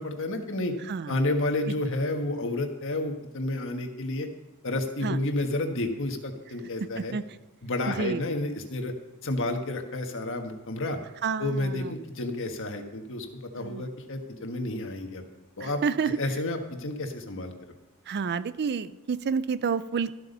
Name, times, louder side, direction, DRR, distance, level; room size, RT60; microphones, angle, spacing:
voice 1, 0.0-0.7 1.1-4.3 4.6-7.1 7.6-8.9 9.2-11.0 11.4-13.3 13.5-15.2 15.6-15.8 16.2-17.5, left 2 dB, 60° left, 4 dB, 1.5 m, -30 dB
voice 2, 7.9-8.2 11.2-11.9 13.6-13.8 15.6-16.2 18.1-20.1, right 5 dB, 50° right, 15 dB, 0.4 m, -29 dB
13.5 x 8.2 x 5.5 m, 1.1 s
head